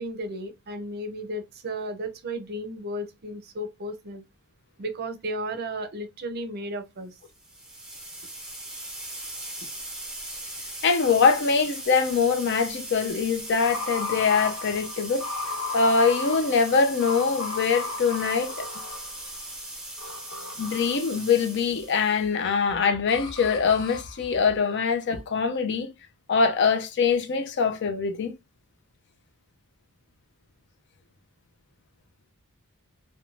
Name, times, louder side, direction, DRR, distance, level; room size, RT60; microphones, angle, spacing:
voice 1, 0.0-4.2 4.8-7.2, right 1 dB, 45° right, 0.6 m, -34 dB
sound 1, 7.3-22.3, right 1 dB, 5° right, 0.8 m, -39 dB
voice 2, 10.8-15.3 15.7-18.7 20.6-25.9 26.3-28.4, left 5 dB, 50° left, 0.4 m, -23 dB
sound 2, 13.5-19.5 20.0-21.3 23.1-24.2, left 3 dB, 75° left, 1.0 m, -35 dB
2.5 x 2.2 x 3.0 m
head